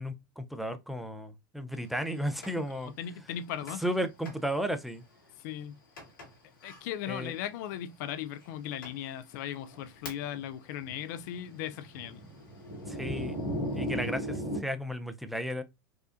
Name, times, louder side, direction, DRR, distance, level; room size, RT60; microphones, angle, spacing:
voice 1, 0.0-2.9 3.8-5.0 7.1-7.3 12.9-13.4 13.7-15.6, equal, ahead, 0.5 m, -34 dB
Thunder, 2.4-2.5 3.7-4.0 4.3-4.4 5.0-5.1 6.0-6.3 6.6-6.8 7.7-7.8 8.4-8.5 8.8-8.9 9.5-10.5 10.8-14.6, equal, 90° left, 1.7 m, -37 dB
voice 2, 2.8-3.9 5.4-5.8 6.6-12.2, left 10 dB, 60° left, 0.5 m, -38 dB
4.8 x 2.4 x 2.5 m
hypercardioid pair, 90°, 11 cm